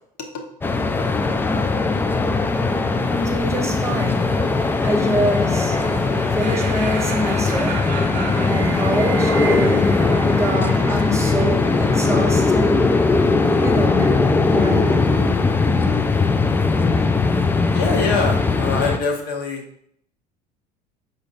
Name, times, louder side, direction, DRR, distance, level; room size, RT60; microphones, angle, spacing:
sound 1, 0.6-19.0, left 3 dB, 10° left, 0.3 m, -19 dB
voice 1, 3.1-5.8 6.3-7.9 8.4-12.9 13.6-15.0, equal, 15° right, 1.0 m, -25 dB
sound 2, 3.8-14.1, right 5 dB, 80° right, 0.7 m, -35 dB
voice 2, 17.7-19.6, left 4 dB, 50° left, 1.0 m, -23 dB
5.0 x 4.0 x 2.6 m
hypercardioid pair, 70°, 21 cm